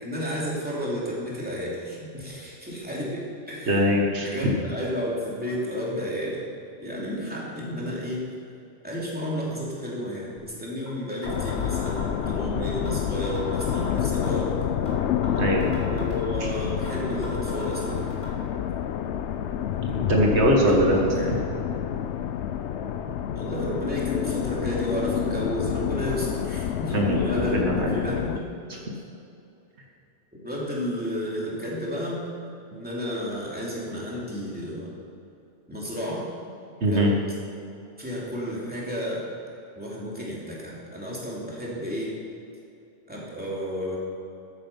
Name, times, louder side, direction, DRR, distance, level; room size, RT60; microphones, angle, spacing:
voice 1, 0.0-3.2 3.5-3.8 4.2-6.4 6.8-8.3 8.8-14.5 15.8-18.1 19.7-20.3 20.7-21.3 23.3-28.8 30.4-32.2 32.7-34.9 35.7-36.3 36.8-37.1 38.0-39.2 39.7-42.1 43.1-44.0, equal, 10° right, -6 dB, 2.8 m, -32 dB
voice 2, 3.7-4.4 15.4-15.7 16.4-16.5 19.9-21.0 26.9-27.9 36.8-37.1, equal, 80° right, -1 dB, 1.9 m, -22 dB
sound 1, 10.9-11.0 11.2-12.4 12.9-13.0 13.2-14.4 14.9-15.0 15.2-16.4 16.9-17.0 17.2-18.3, right 1 dB, 30° left, 3.6 m, -40 dB
sound 2, 11.2-28.4, left 9 dB, 85° left, 0.9 m, -28 dB
13.5 x 8.4 x 5.6 m, 2.7 s
omnidirectional pair, 1.1 m